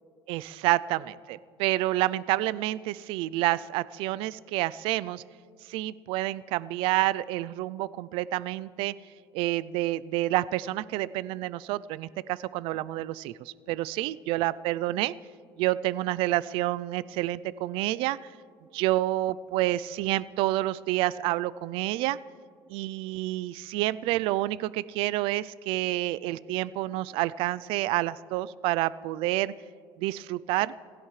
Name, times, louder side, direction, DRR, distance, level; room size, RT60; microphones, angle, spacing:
voice 1, 0.3-5.2 5.7-8.9 9.3-15.1 15.6-18.2 18.7-22.2 22.7-29.5 30.0-30.7, right 16 dB, 70° right, 19 dB, 0.4 m, -28 dB
27.0 x 16.0 x 3.2 m, 2.1 s
cardioid pair, 135°, 9 cm